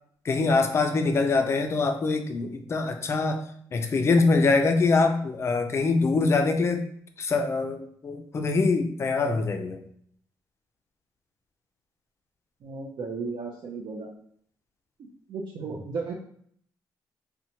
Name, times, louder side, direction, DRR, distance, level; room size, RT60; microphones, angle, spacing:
voice 1, 0.3-3.4 3.7-6.8 7.2-7.8 8.0-9.8, left 3 dB, 35° left, 5 dB, 0.3 m, -24 dB
voice 2, 12.6-14.1 15.3-16.1, right 4 dB, 60° right, -3 dB, 0.4 m, -34 dB
2.8 x 2.1 x 2.7 m, 0.63 s
cardioid pair, 135°, 8 cm